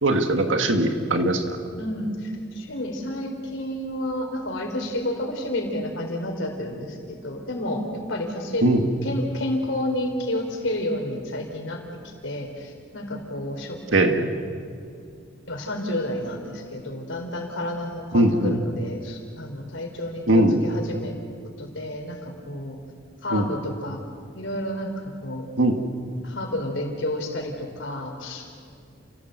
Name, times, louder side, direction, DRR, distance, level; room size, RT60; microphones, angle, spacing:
voice 1, 0.0-1.6 8.6-8.9 13.9-14.3 18.1-18.6 20.3-20.6 23.3-23.5 25.6-25.8, right 1 dB, 70° right, 6 dB, 2.1 m, -20 dB
voice 2, 1.8-8.7 9.0-13.8 15.5-21.1 21.6-22.8 23.2-24.0 24.3-25.5 26.2-28.5, left 1 dB, 65° left, 3 dB, 4.3 m, -30 dB
30.0 x 17.0 x 8.1 m, 2.3 s
head